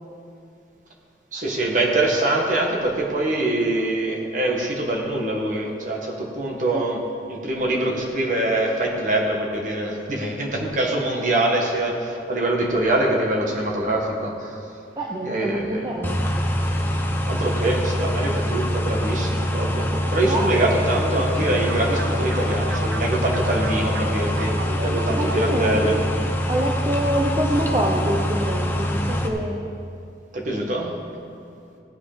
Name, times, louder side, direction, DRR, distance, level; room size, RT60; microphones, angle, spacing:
voice 1, 1.3-7.0 7.3-14.6 15.2-15.9 17.3-24.5 24.8-26.0 30.3-30.9, right 1 dB, 45° right, -1 dB, 1.9 m, -24 dB
voice 2, 15.0-16.2 19.9-20.7 25.2-26.0 26.5-29.6, right 1 dB, 25° right, -2 dB, 0.9 m, -26 dB
sound 1, 16.0-29.3, equal, 10° left, 0.9 m, -24 dB
sound 2, 20.9-26.1, right 1 dB, 60° right, 1.0 m, -33 dB
17.0 x 8.6 x 5.2 m, 2.5 s
head